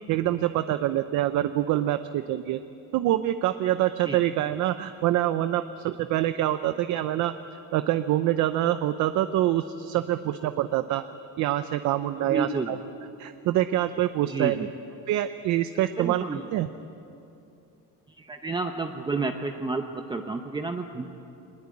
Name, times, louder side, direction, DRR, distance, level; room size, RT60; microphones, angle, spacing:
voice 1, 0.1-2.6 2.9-7.3 7.7-11.0 11.4-12.8 13.2-14.7 15.1-16.7, right 13 dB, 65° right, 11 dB, 0.7 m, -25 dB
voice 2, 12.2-12.7 14.3-14.7 16.0-16.4 18.2-21.2, right 3 dB, 15° right, 5 dB, 0.8 m, -30 dB
20.5 x 20.5 x 8.5 m, 2.8 s
cardioid pair, 155°, 31 cm